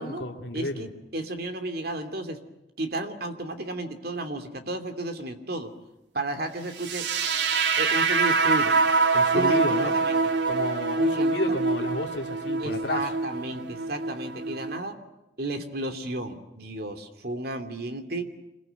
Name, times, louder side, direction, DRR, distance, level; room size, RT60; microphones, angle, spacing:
voice 1, 0.0-0.8 9.1-10.0 10.5-13.1, left 1 dB, 70° left, 2 dB, 2.6 m, -31 dB
voice 2, 0.5-2.4 2.8-5.7 6.1-7.1 7.5-8.8 9.3-10.2 11.1-11.5 12.6-15.0 15.4-18.3, right 2 dB, 55° right, 7 dB, 2.8 m, -33 dB
sound 1, 6.7-14.8, right 4 dB, 75° right, 1.8 m, -25 dB
26.5 x 22.0 x 9.3 m, 0.94 s
head